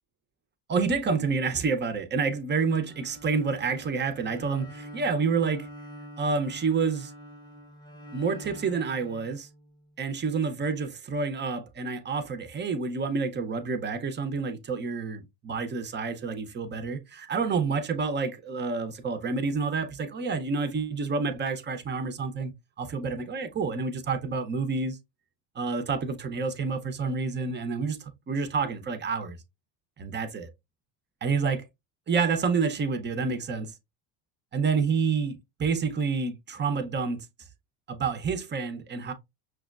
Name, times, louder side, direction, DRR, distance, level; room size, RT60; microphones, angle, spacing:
voice 1, 0.7-5.7 6.2-7.1 8.1-9.5 10.0-22.5 22.8-25.0 25.6-29.4 30.0-30.5 31.2-31.7 32.1-33.7 34.5-37.3 37.9-39.1, right 5 dB, 25° right, 0.5 m, -28 dB
Bowed string instrument, 2.8-10.0, equal, 10° left, 0.8 m, -46 dB
5.9 x 2.1 x 2.3 m
supercardioid pair, 100°, 49 cm